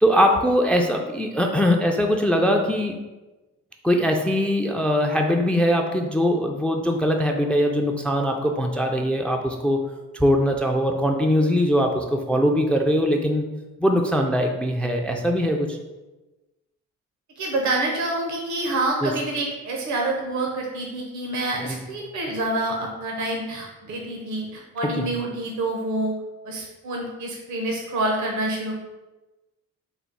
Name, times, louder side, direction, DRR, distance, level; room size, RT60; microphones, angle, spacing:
voice 1, 0.0-3.0 3.8-9.8 10.1-13.4 13.8-15.8 19.0-19.1 21.6-21.8 25.0-25.1, equal, 5° left, 3 dB, 0.3 m, -21 dB
voice 2, 17.4-26.1 26.4-28.8, right 2 dB, 70° right, 0 dB, 0.7 m, -27 dB
4.0 x 2.0 x 4.5 m, 1.1 s
cardioid pair, 90°, 30 cm